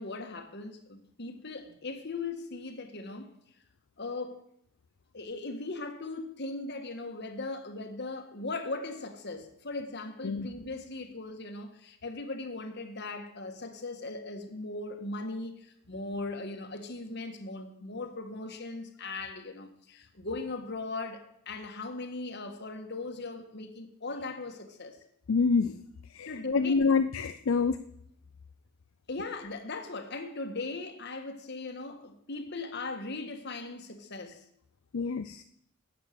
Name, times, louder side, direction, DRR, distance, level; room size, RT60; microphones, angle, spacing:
voice 1, 0.0-3.3 4.0-4.4 5.1-25.0 26.3-26.9 29.1-34.4, left 3 dB, 55° left, 1.6 m, -38 dB
voice 2, 25.3-25.8 26.1-27.8 34.9-35.4, left 4 dB, 70° left, 0.5 m, -27 dB
12.5 x 8.6 x 6.7 m
head